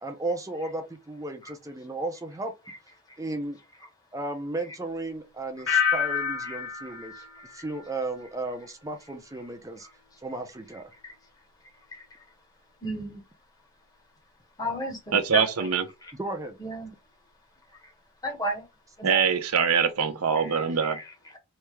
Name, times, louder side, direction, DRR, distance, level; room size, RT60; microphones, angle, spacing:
voice 1, 0.0-2.5 3.2-3.6 4.1-7.3 7.5-9.9 10.2-10.9 16.2-16.6, right 2 dB, 15° right, 0.5 m, -34 dB
sound 1, 5.7-8.5 8.8-9.3, left 7 dB, 60° left, 1.3 m, -30 dB
voice 2, 12.8-13.2 14.6-15.7 16.0-16.1 16.6-16.9 18.2-18.6 19.0-19.3 20.3-21.4, equal, 15° left, 1.2 m, -34 dB
voice 3, 15.1-15.8 19.0-21.0, right 6 dB, 75° right, 0.7 m, -23 dB
3.4 x 2.8 x 3.2 m
head